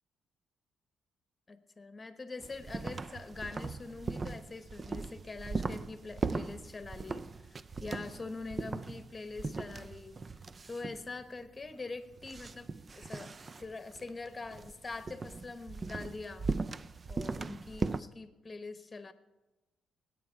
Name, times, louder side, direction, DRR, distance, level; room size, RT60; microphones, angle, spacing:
voice 1, 1.5-10.2 10.7-16.5 17.1-19.1, left 3 dB, 25° left, 10 dB, 1.1 m, -44 dB
sound 1, 2.4-18.0, right 4 dB, 35° right, 0.4 m, -39 dB
19.0 x 9.2 x 4.5 m, 1.1 s
cardioid pair, 90°, 0 cm